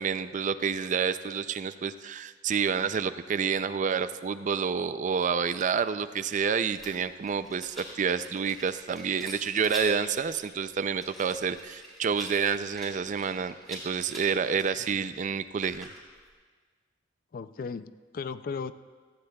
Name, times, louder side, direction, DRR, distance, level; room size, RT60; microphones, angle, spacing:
voice 1, 0.0-15.9, right 6 dB, 45° right, 13 dB, 0.4 m, -29 dB
Rattle, 6.7-16.3, equal, ahead, 3.7 m, -45 dB
voice 2, 17.3-18.7, left 5 dB, 50° left, 13 dB, 0.4 m, -36 dB
17.5 x 15.0 x 2.3 m, 1.5 s
head